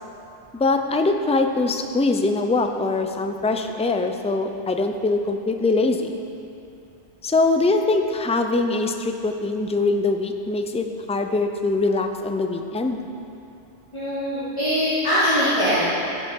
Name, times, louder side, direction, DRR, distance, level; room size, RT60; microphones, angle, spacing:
voice 1, 0.5-6.1 7.2-13.0, left 3 dB, 10° left, 5 dB, 0.4 m, -22 dB
voice 2, 13.9-15.8, equal, 25° left, -14 dB, 3.4 m, -22 dB
16.5 x 7.6 x 5.4 m, 2.8 s
omnidirectional pair, 1.2 m